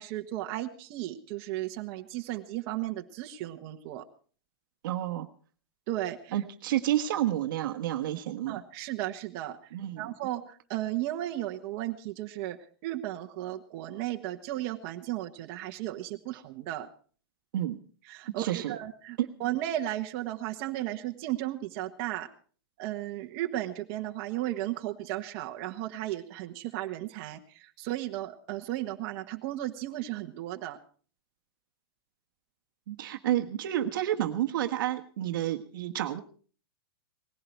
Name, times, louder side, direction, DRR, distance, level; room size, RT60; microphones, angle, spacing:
voice 1, 0.0-4.0 5.9-6.4 8.5-9.7 10.0-12.6 12.8-16.9 18.1-22.3 22.8-30.8, right 14 dB, 35° right, 4 dB, 1.4 m, -35 dB
voice 2, 4.8-5.3 6.3-8.6 9.7-10.1 17.5-17.8 18.4-18.8 19.2-19.3 32.9-36.2, right 12 dB, 55° right, 6 dB, 1.4 m, -30 dB
19.0 x 16.0 x 4.6 m, 0.43 s
supercardioid pair, 165°, 13 cm